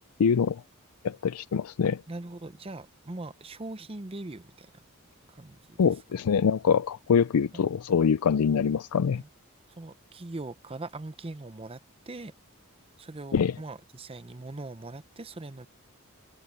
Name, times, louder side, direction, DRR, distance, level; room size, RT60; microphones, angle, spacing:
voice 1, 0.2-0.6 1.0-2.0 5.8-9.2 13.3-13.5, left 6 dB, 80° left, 0.4 m, -24 dB
voice 2, 2.1-4.8 5.3-5.8 7.5-7.6 9.1-9.3 9.8-11.8 12.1-12.3 13.0-15.7, right 2 dB, 25° right, 0.7 m, -41 dB
head